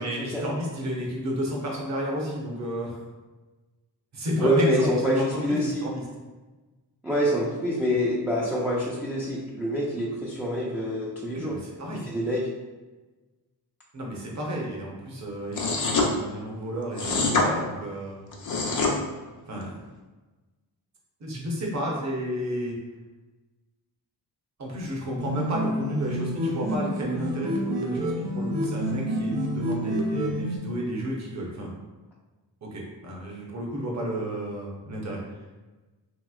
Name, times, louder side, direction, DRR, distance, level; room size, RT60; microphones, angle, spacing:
voice 1, 0.0-3.0 4.1-6.0 11.3-12.1 13.9-18.2 19.5-19.8 21.2-22.8 24.6-31.7 32.6-35.2, equal, 40° right, -2 dB, 0.8 m, -32 dB
voice 2, 4.4-5.9 7.0-11.6 12.1-12.5, equal, 5° right, -7 dB, 0.4 m, -26 dB
sound 1, 15.5-16.1 17.0-17.5 18.3-18.9, left 3 dB, 45° left, 0.5 m, -24 dB
sound 2, 25.2-30.6, equal, 70° right, 0.7 m, -28 dB
2.9 x 2.9 x 2.3 m, 1.2 s
wide cardioid pair, 105°, 43 cm